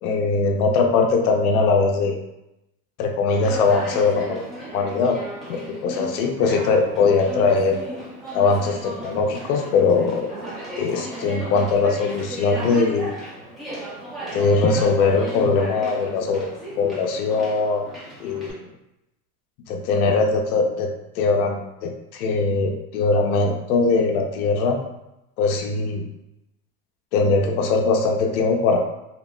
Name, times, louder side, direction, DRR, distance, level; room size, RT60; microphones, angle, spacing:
voice 1, 0.0-2.2 3.0-4.5 4.7-5.2 5.5-7.8 8.3-10.3 10.8-13.1 14.3-16.5 16.8-17.8 18.2-18.7 19.7-20.9 21.2-24.8 25.4-26.1 27.1-28.8, left 4 dB, 75° left, 2 dB, 0.6 m, -21 dB
Conversation, 3.3-18.5, right 1 dB, ahead, 0.7 m, -36 dB
2.7 x 2.0 x 3.1 m, 0.90 s
supercardioid pair, 125°, 44 cm